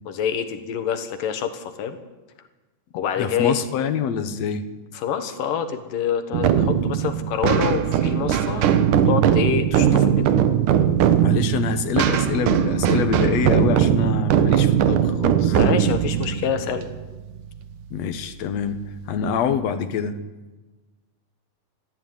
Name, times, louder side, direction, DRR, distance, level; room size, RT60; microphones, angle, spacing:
voice 1, 0.1-2.0 2.9-3.6 4.9-8.7 9.1-10.3 15.5-16.9, left 8 dB, 85° left, 9 dB, 3.2 m, -26 dB
voice 2, 3.2-4.7 11.2-15.6 17.9-18.8 19.1-20.2, left 7 dB, 60° left, 9 dB, 2.4 m, -25 dB
sound 1, 6.3-17.7, right 9 dB, 75° right, 2.6 m, -20 dB
22.0 x 14.5 x 9.5 m, 1.2 s
omnidirectional pair, 3.8 m